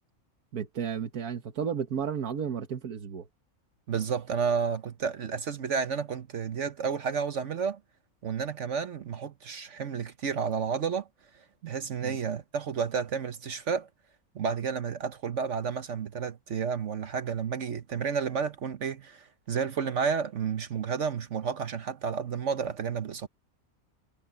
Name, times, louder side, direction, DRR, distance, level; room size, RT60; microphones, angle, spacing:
voice 1, 0.5-3.3 12.0-12.2, right 7 dB, 85° right, 1.8 m, -33 dB
voice 2, 3.9-7.8 8.2-11.1 11.6-13.9 14.3-23.3, right 6 dB, 55° right, 1.2 m, -31 dB
omnidirectional pair, 1.5 m